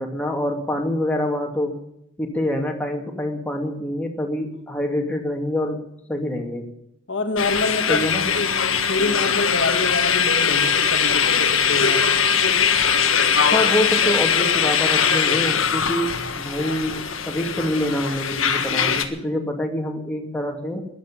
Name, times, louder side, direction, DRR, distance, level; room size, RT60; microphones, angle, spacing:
voice 1, 0.0-1.8 2.2-5.8 6.1-6.7 7.9-8.3 13.5-20.8, left 1 dB, 5° left, 1 dB, 2.5 m, -26 dB
voice 2, 7.1-8.5 8.9-12.2, left 2 dB, 60° left, 6 dB, 1.6 m, -26 dB
sound 1, 7.4-19.0, left 7 dB, 85° left, 1.7 m, -21 dB
14.0 x 11.0 x 8.6 m, 0.77 s
head